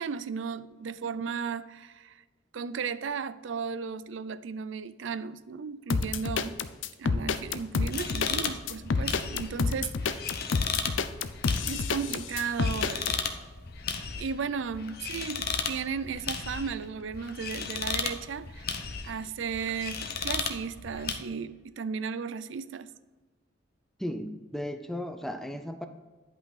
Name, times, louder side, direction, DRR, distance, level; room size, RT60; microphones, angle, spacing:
voice 1, 0.0-2.2 2.5-6.6 7.0-10.4 11.6-13.1 14.2-18.8 19.0-22.9, right 6 dB, 75° right, 0.4 m, -35 dB
sound 1, 5.9-13.1, left 4 dB, 80° left, 0.5 m, -28 dB
sound 2, 7.9-21.2, left 5 dB, 55° left, 0.9 m, -35 dB
voice 2, 24.0-25.9, left 1 dB, ahead, 0.6 m, -35 dB
10.5 x 5.7 x 4.1 m
head